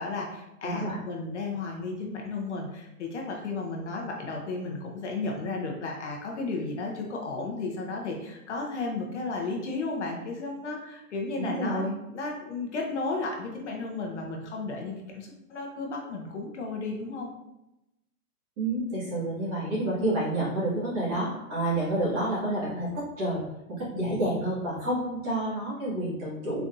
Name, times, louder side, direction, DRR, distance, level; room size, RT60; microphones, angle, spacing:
voice 1, 0.0-11.8 12.1-17.3, left 3 dB, 50° left, 0 dB, 0.6 m, -34 dB
voice 2, 0.6-1.0 11.4-12.0 18.6-23.4 23.8-26.6, right 1 dB, 25° right, -7 dB, 1.2 m, -29 dB
4.0 x 3.3 x 2.5 m, 0.91 s
hypercardioid pair, 170°, 45 cm